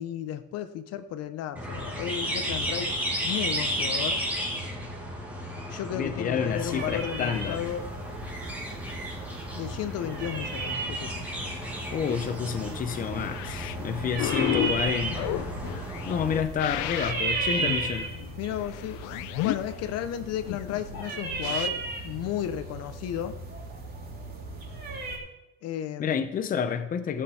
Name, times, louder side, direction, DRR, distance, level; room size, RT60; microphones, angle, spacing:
voice 1, 0.0-4.2 5.7-7.9 9.5-11.3 18.4-23.4 25.6-26.2, left 10 dB, 55° left, 11 dB, 0.9 m, -34 dB
sound 1, 1.6-16.4, equal, 5° right, 2.0 m, -34 dB
voice 2, 5.9-7.6 11.9-15.3 16.1-18.1 26.0-27.2, left 7 dB, 25° left, 9 dB, 0.8 m, -29 dB
sound 2, 6.5-25.2, right 3 dB, 30° right, 3.0 m, -36 dB
sound 3, 13.3-21.7, left 16 dB, 75° left, 0.7 m, -33 dB
15.0 x 8.6 x 4.4 m, 0.95 s
cardioid pair, 165°, 30 cm